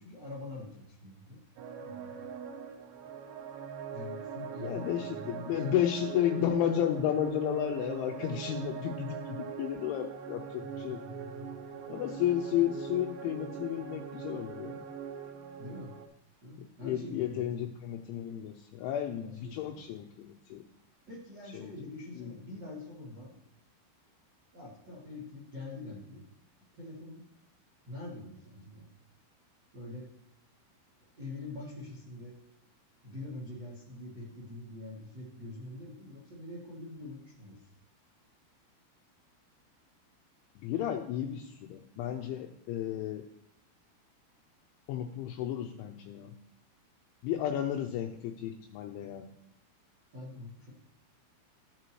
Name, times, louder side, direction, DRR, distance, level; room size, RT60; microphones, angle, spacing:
voice 1, 0.0-1.4 1.8-2.1 3.9-5.8 10.6-11.6 15.6-15.9 16.4-17.7 19.1-19.8 21.1-23.4 24.5-26.2 26.7-27.2 27.8-28.9 29.7-30.0 31.2-32.3 33.0-37.6 50.1-50.7, left 2 dB, 35° right, -6 dB, 1.8 m, -45 dB
sound 1, 1.6-16.1, right 7 dB, 85° right, 2.5 m, -42 dB
voice 2, 4.6-11.0 11.9-14.8 16.8-20.6 21.5-21.7 22.2-22.3 40.6-43.2 44.9-46.3 47.2-49.3, left 10 dB, 85° left, 4 dB, 2.8 m, -32 dB
14.0 x 7.9 x 3.0 m, 0.79 s
omnidirectional pair, 6.0 m